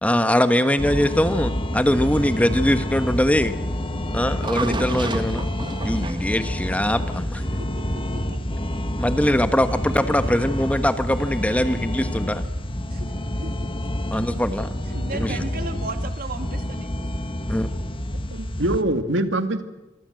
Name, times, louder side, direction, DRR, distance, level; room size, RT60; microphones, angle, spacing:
voice 1, 0.0-3.5 4.1-5.5 5.8-7.4 9.0-12.4 14.1-14.7 15.1-15.4 17.5-17.7, left 1 dB, 10° left, 10 dB, 1.3 m, -22 dB
sound 1, 0.8-18.8, left 1 dB, 30° left, 1.5 m, -28 dB
sound 2, 1.7-7.6, right 2 dB, 25° right, 1.5 m, -33 dB
voice 2, 7.6-8.4 12.9-13.1 13.4-13.5 14.9-17.1, right 2 dB, 55° right, 7 dB, 2.8 m, -36 dB
voice 3, 14.9-15.4 18.3-19.6, right 1 dB, 90° right, 8 dB, 2.3 m, -25 dB
26.5 x 24.0 x 7.8 m, 1.0 s
head